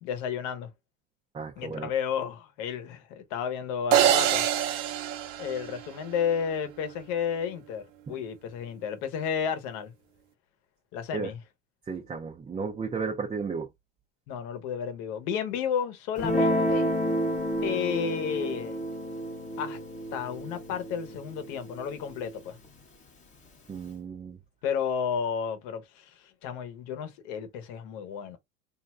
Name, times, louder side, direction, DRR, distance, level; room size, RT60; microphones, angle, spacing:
voice 1, 0.0-0.7 1.6-4.5 5.4-7.8 8.1-9.9 10.9-11.4 14.3-16.9 17.6-18.8 19.6-19.8 20.1-22.6 24.6-28.4, left 7 dB, 70° left, 1.0 m, -32 dB
voice 2, 1.3-1.9 8.1-8.2 11.1-11.3 11.9-13.7 23.7-24.4, right 5 dB, 15° right, 0.5 m, -34 dB
sound 1, 3.9-6.3, right 10 dB, 70° right, 0.7 m, -25 dB
Guitar, 16.2-22.8, equal, 20° left, 0.8 m, -30 dB
3.1 x 2.6 x 2.2 m
supercardioid pair, 130°, 37 cm